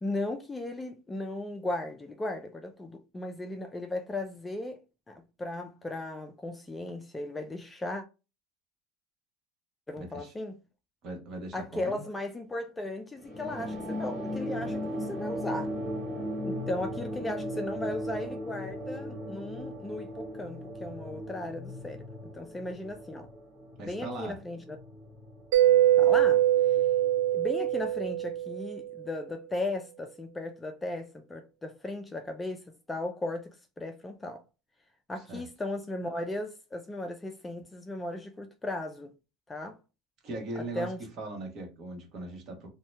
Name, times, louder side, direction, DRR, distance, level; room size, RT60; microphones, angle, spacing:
voice 1, 0.0-4.8 5.1-8.0 9.9-10.6 11.5-15.7 16.5-22.1 22.3-23.3 23.9-24.8 26.0-26.4 27.3-33.5 33.8-34.4 35.1-39.1 39.5-39.8 40.7-41.0, left 2 dB, 10° left, 0.3 m, -36 dB
voice 2, 10.0-10.3 11.0-12.0 23.8-24.4 35.3-35.4 40.2-42.7, right 2 dB, 45° right, 1.1 m, -39 dB
sound 1, 13.2-28.1, equal, 20° right, 1.4 m, -38 dB
Mallet percussion, 25.5-29.0, right 12 dB, 80° right, 0.4 m, -23 dB
2.7 x 2.2 x 3.2 m
supercardioid pair, 140°, 0 cm